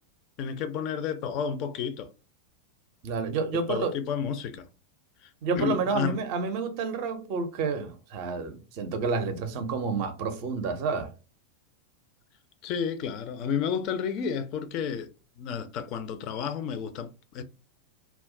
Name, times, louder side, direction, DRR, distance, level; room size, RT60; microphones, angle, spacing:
voice 1, 0.4-2.1 3.7-4.7 5.2-5.3 5.6-6.2 12.6-15.1 15.4-17.4, left 7 dB, 40° left, 0.4 m, -31 dB
voice 2, 3.0-3.9 5.4-11.1, right 4 dB, 45° right, 0.5 m, -29 dB
2.2 x 2.0 x 3.6 m
figure-of-eight pair, 90°, 0 cm